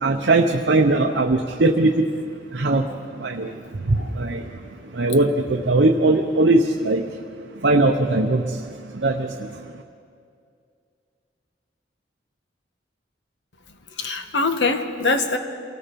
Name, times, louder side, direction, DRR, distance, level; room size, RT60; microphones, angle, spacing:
voice 1, 0.0-2.0 2.6-2.8 3.2-3.5 3.9-4.4 5.0-7.0 7.6-8.4 9.0-9.3, right 2 dB, 60° right, 3 dB, 0.8 m, -19 dB
voice 2, 14.0-15.4, left 3 dB, 70° left, 7 dB, 1.4 m, -23 dB
27.5 x 18.5 x 5.3 m, 2.4 s
head